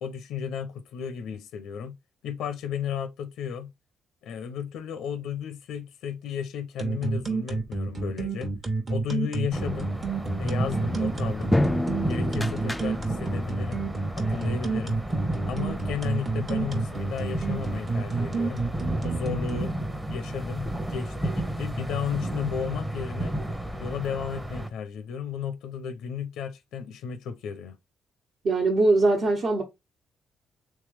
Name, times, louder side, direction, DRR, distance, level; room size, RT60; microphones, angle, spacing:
voice 1, 0.0-2.0 2.2-3.7 4.2-8.5 8.9-9.9 10.4-11.6 12.1-13.9 14.2-15.0 15.5-18.6 19.0-19.8 20.1-23.3 23.8-27.7, left 8 dB, 85° left, 0.5 m, -34 dB
sound 1, 6.8-19.6, right 4 dB, 35° right, 1.0 m, -29 dB
sound 2, 9.5-24.7, right 1 dB, 10° right, 0.8 m, -33 dB
sound 3, 10.4-13.4, left 1 dB, 10° left, 0.3 m, -29 dB
voice 2, 28.4-29.6, right 2 dB, 60° right, 1.3 m, -21 dB
3.3 x 3.3 x 3.3 m
cardioid pair, 90°, 0 cm